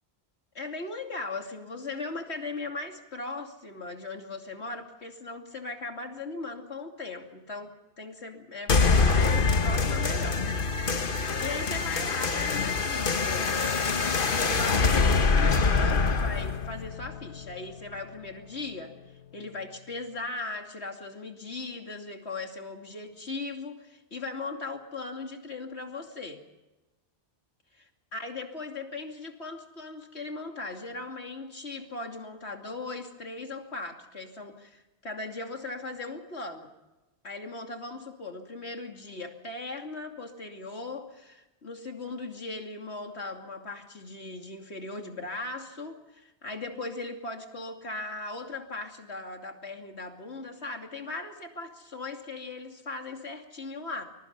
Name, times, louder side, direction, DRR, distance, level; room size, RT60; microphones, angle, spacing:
voice 1, 0.5-10.4 10.8-13.6 14.3-18.9 19.3-26.4 28.1-36.7 37.2-54.0, left 3 dB, 80° left, 4 dB, 3.0 m, -38 dB
sound 1, 8.7-17.7, left 4 dB, 55° left, 1.3 m, -25 dB
24.5 x 22.5 x 5.4 m, 1.0 s
omnidirectional pair, 1.1 m